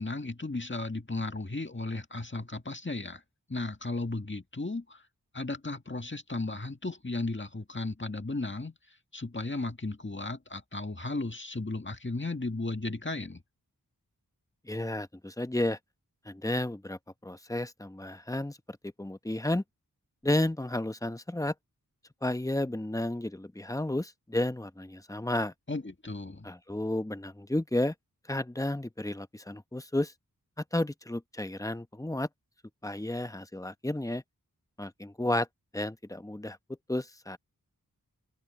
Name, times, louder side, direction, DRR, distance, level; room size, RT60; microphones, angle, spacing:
voice 1, 0.0-3.2 3.5-5.0 5.3-8.7 9.1-13.4 25.7-26.5, left 2 dB, 35° left, 1.8 m, -35 dB
voice 2, 14.7-15.8 16.3-19.6 20.2-21.5 22.2-25.5 26.4-27.9 28.3-30.1 30.6-32.3 32.8-34.2 34.8-35.5 35.7-36.6 36.9-37.4, left 1 dB, 10° left, 0.8 m, -32 dB
wide cardioid pair, 45°, 35 cm